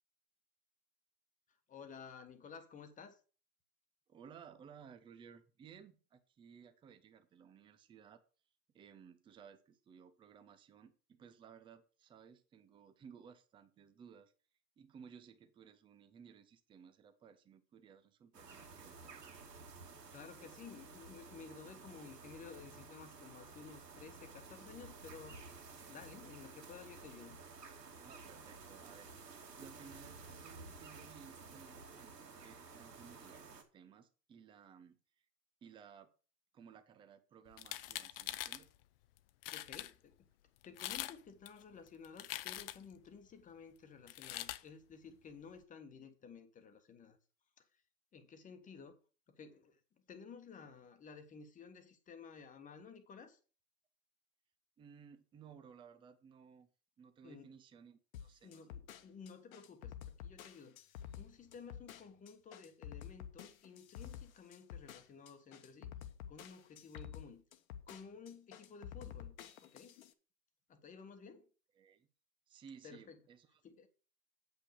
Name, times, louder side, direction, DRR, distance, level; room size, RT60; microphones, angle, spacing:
voice 1, 1.5-3.2 19.9-25.4 25.9-27.4 39.5-40.3 40.6-47.2 47.6-47.8 48.1-49.0 49.3-49.8 50.1-53.4 57.2-57.5 58.4-65.9 66.3-67.4 67.9-69.3 69.6-70.0 70.7-71.5 72.8-73.2 73.6-73.9, left 5 dB, 15° left, 1.3 m, -54 dB
voice 2, 4.1-8.2 8.7-14.3 14.8-19.2 28.0-29.1 29.6-35.0 35.6-36.1 36.5-38.7 54.8-56.7 57.0-58.8 71.8-72.1 72.5-73.6, right 7 dB, 10° right, 0.6 m, -58 dB
sound 1, 18.3-33.6, right 4 dB, 85° right, 2.5 m, -53 dB
sound 2, 37.5-38.6 39.2-39.3 39.4-39.9 40.6-41.2 41.5-42.9 44.1-44.6, left 14 dB, 40° left, 0.5 m, -43 dB
sound 3, 58.1-70.1, left 9 dB, 55° left, 1.3 m, -50 dB
8.3 x 5.7 x 6.5 m
hypercardioid pair, 120°, 48 cm